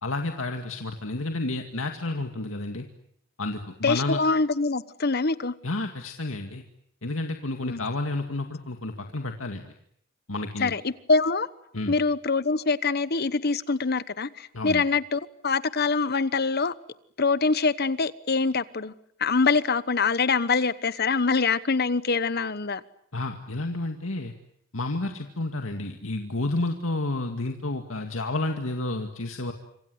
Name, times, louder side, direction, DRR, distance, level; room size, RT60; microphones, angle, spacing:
voice 1, 0.0-2.9 3.4-4.2 5.6-6.6 7.0-9.7 10.3-10.7 11.7-12.0 14.5-14.8 23.1-24.3 24.7-29.5, left 2 dB, 80° left, 2.2 m, -30 dB
voice 2, 3.8-5.5 7.6-7.8 10.6-11.5 11.9-16.7 17.2-18.9 19.2-22.8, left 4 dB, 50° left, 1.1 m, -24 dB
27.0 x 26.0 x 8.0 m
head